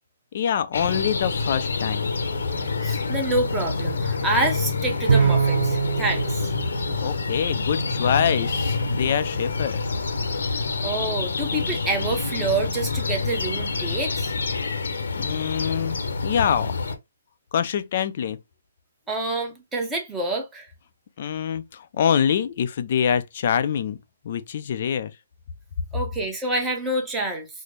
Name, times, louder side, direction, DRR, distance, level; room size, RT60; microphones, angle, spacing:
voice 1, 0.3-2.1 7.0-9.8 15.2-16.0 16.2-16.8 17.5-18.4 21.2-24.0 24.2-25.1, left 8 dB, 45° left, 0.5 m, -25 dB
sound 1, 0.7-16.9, left 4 dB, 75° left, 0.9 m, -27 dB
voice 2, 2.8-6.5 10.8-14.3 19.1-20.7 25.9-27.5, right 2 dB, 10° right, 0.9 m, -27 dB
Bowed string instrument, 5.1-7.7, right 6 dB, 80° right, 0.6 m, -24 dB
4.2 x 2.1 x 3.2 m
hypercardioid pair, 160°, 0 cm